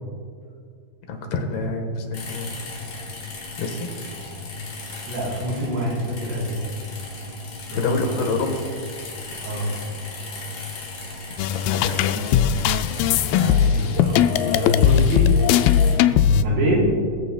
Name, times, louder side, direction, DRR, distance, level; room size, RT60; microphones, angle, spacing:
voice 1, 1.1-2.5 3.6-3.9 7.7-8.6 11.5-12.5 16.0-16.2, left 3 dB, 75° left, 4 dB, 3.3 m, -28 dB
sound 1, 2.1-16.0, left 3 dB, 55° left, 4.1 m, -36 dB
voice 2, 5.1-6.8 7.7-8.3 9.4-9.7 13.4-15.3 16.3-16.9, equal, 80° right, -3 dB, 5.7 m, -25 dB
sound 2, 11.4-16.4, left 9 dB, 90° left, 2.1 m, -19 dB
21.0 x 14.0 x 2.3 m, 2.3 s
omnidirectional pair, 4.7 m